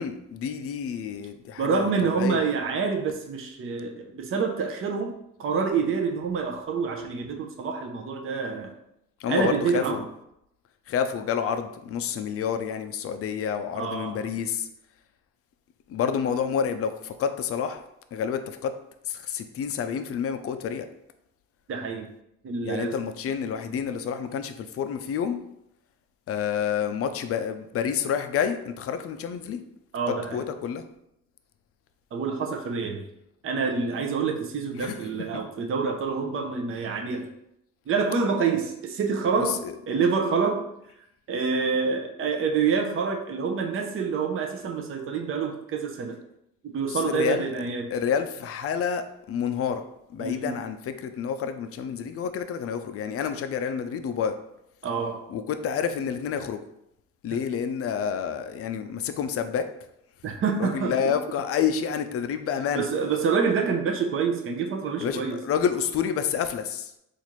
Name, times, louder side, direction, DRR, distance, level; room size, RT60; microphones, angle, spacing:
voice 1, 0.0-1.9 2.2-2.4 9.2-10.0 10.9-14.7 15.9-17.8 18.1-18.7 19.1-20.9 22.6-25.4 26.3-29.6 30.3-30.8 34.8-34.9 39.4-39.7 47.1-47.5 47.9-49.8 50.1-54.3 55.3-56.6 57.2-59.7 60.6-62.8 65.0-66.9, left 7 dB, 50° left, 9 dB, 0.4 m, -29 dB
voice 2, 1.6-5.1 5.4-8.7 9.3-10.0 13.7-14.3 21.7-22.1 22.4-23.0 29.9-30.4 32.1-33.0 33.4-37.3 37.9-40.6 41.3-46.2 46.6-47.9 50.2-50.6 54.8-55.2 60.2-61.1 62.7-65.4, right 5 dB, 45° right, 2 dB, 0.6 m, -27 dB
4.1 x 2.5 x 3.0 m, 0.80 s
cardioid pair, 90°, 30 cm